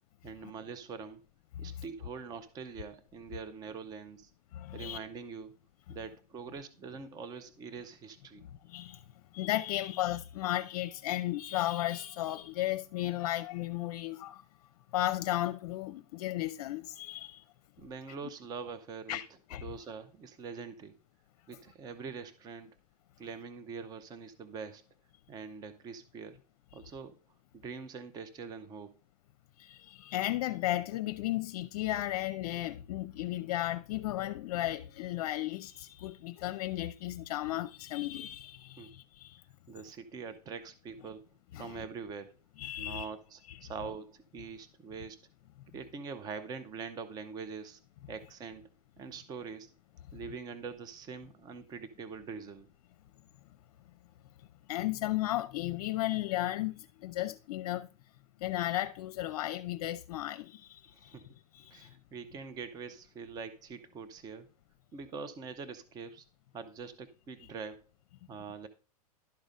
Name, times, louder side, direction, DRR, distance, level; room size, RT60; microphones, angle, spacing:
voice 1, 0.2-1.2 1.6-4.3 4.7-5.6 5.9-8.4 17.8-19.2 19.6-20.9 21.5-22.7 23.2-24.8 25.3-26.4 26.7-27.2 27.5-29.0 38.8-38.9 39.7-41.2 41.6-42.3 42.8-45.2 45.7-47.8 48.1-48.7 49.0-49.7 50.1-52.7 60.9-61.2 61.7-64.5 64.9-66.2 66.5-67.8 68.3-68.7, right 5 dB, 20° right, 0.7 m, -44 dB
voice 2, 4.5-5.0 5.9-6.0 8.6-9.0 9.3-14.4 14.9-17.4 19.1-19.7 29.6-39.4 41.5-41.8 42.6-43.1 43.5-43.7 54.7-57.9 58.4-61.2 61.5-62.0, left 15 dB, 55° left, 0.6 m, -35 dB
12.0 x 4.0 x 5.1 m
supercardioid pair, 145°, 19 cm